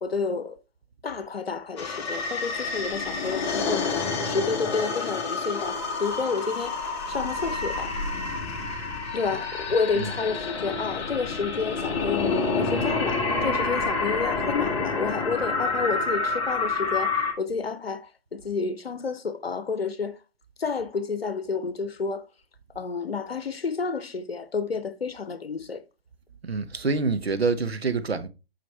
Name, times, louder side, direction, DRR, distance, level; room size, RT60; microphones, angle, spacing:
voice 1, 0.0-0.6 1.0-6.8 7.1-7.9 9.1-20.2 20.6-22.2 22.7-25.8, left 5 dB, 75° left, 0.9 m, -30 dB
sound 1, 1.8-17.3, left 4 dB, 25° left, 1.3 m, -28 dB
voice 2, 9.7-10.1 26.4-28.3, right 4 dB, 85° right, 0.9 m, -27 dB
5.8 x 5.1 x 3.3 m
figure-of-eight pair, 135°, 30 cm